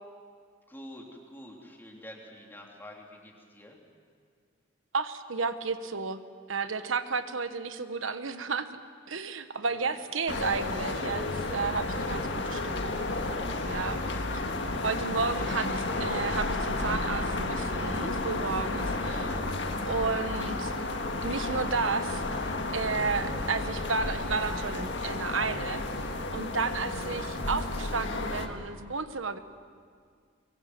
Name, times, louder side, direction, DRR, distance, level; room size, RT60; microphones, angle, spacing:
voice 1, 0.7-3.8 9.6-10.0 14.0-14.2 15.4-15.5 19.0-19.6, left 1 dB, 10° left, -1 dB, 3.2 m, -47 dB
voice 2, 4.9-6.2 6.5-8.7 9.1-13.0 13.6-14.0 14.8-15.7 16.0-19.2 19.9-20.7 21.2-22.4 22.7-25.8 26.3-29.4, right 4 dB, 80° right, 10 dB, 1.2 m, -32 dB
sound 1, 10.3-28.5, left 2 dB, 60° left, 1.9 m, -32 dB
24.0 x 22.5 x 7.9 m, 2.1 s
head